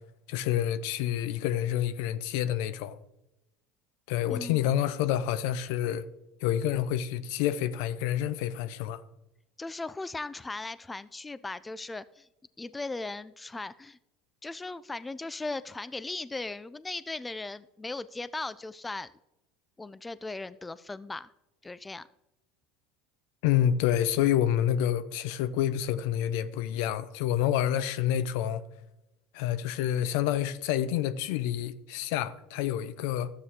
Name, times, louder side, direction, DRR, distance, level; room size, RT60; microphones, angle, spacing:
voice 1, 0.3-3.0 4.1-6.0 6.4-9.0 23.4-28.6 29.3-33.3, left 11 dB, 70° left, 0.6 m, -28 dB
voice 2, 4.3-4.8 9.6-12.3 12.6-14.0 14.4-19.1 19.8-21.3 21.6-22.1, left 3 dB, 15° left, 0.4 m, -38 dB
12.5 x 8.4 x 3.6 m
supercardioid pair, 95°, 0 cm